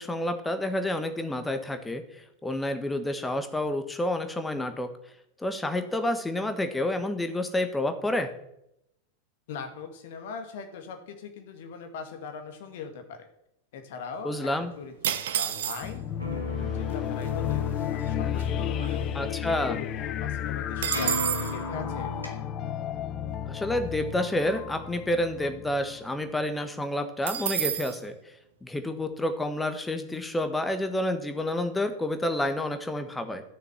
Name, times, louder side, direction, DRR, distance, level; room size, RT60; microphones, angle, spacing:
voice 1, 0.0-4.9 5.4-8.3 14.2-14.7 19.1-19.8 23.4-33.4, left 1 dB, 10° left, 8 dB, 1.4 m, -29 dB
voice 2, 9.5-13.3 13.7-14.5 14.8-19.2 19.7-22.1, left 5 dB, 55° left, 6 dB, 2.0 m, -41 dB
sound 1, 15.0-16.1 16.9-17.0 17.2-17.6 18.0-19.5 19.8-19.9 20.2-21.6 27.3-28.0, right 10 dB, 60° right, 0.8 m, -30 dB
sound 2, 15.8-26.0, left 9 dB, 30° left, 0.6 m, -32 dB
sound 3, 16.2-22.3, left 1 dB, 85° left, 2.4 m, -38 dB
12.5 x 6.8 x 7.1 m, 0.81 s
figure-of-eight pair, 90°, 0 cm